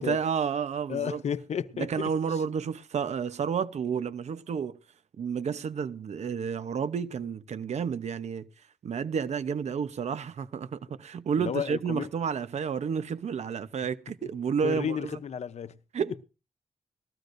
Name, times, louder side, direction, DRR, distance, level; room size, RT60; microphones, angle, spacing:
voice 1, 0.0-1.2 1.8-4.8 5.2-8.5 8.8-15.2 15.9-16.2, right 6 dB, 65° right, 0.8 m, -31 dB
voice 2, 0.9-2.1 11.4-12.1 14.2-14.3 14.6-15.8, left 8 dB, 65° left, 0.7 m, -32 dB
19.5 x 14.5 x 2.6 m
wide cardioid pair, 130°, 12 cm